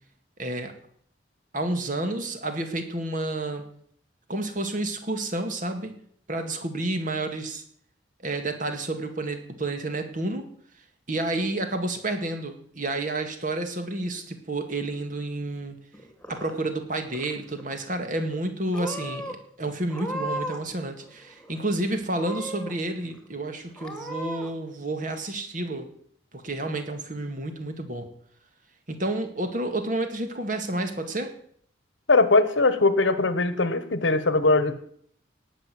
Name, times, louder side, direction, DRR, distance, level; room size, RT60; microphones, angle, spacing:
voice 1, 0.4-0.7 1.5-3.6 4.3-6.0 6.3-7.6 8.2-10.5 11.1-15.8 16.3-25.9 26.3-28.1 28.9-31.3, right 2 dB, 45° right, 6 dB, 2.0 m, -30 dB
Purr / Meow, 15.9-16.8 17.1-17.7 18.3-18.5 18.7-19.3 19.9-20.7 21.0-21.7 22.1-22.7 23.2-23.3 23.8-24.5, right 1 dB, 5° left, 2.0 m, -36 dB
voice 2, 32.1-34.8, left 3 dB, 85° left, 13 dB, 1.3 m, -21 dB
18.5 x 6.4 x 7.8 m, 0.63 s
head